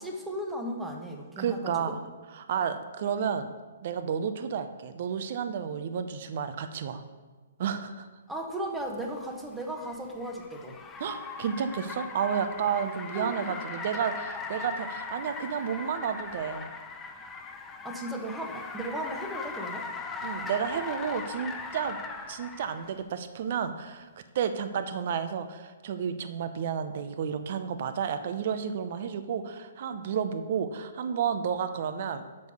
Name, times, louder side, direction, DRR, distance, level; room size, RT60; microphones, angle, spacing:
voice 1, 0.0-2.0 8.3-10.8 13.1-13.5 17.8-19.9, right 1 dB, 5° right, 2 dB, 1.0 m, -36 dB
voice 2, 1.4-2.0 2.4-3.5 3.8-7.0 7.6-8.1 11.0-16.7 20.2-22.0 22.3-24.1 24.3-32.2, right 7 dB, 55° right, 9 dB, 0.6 m, -31 dB
Car, 9.0-22.9, left 4 dB, 15° left, 0.7 m, -39 dB
6.1 x 5.3 x 6.8 m, 1.3 s
hypercardioid pair, 135°, 0 cm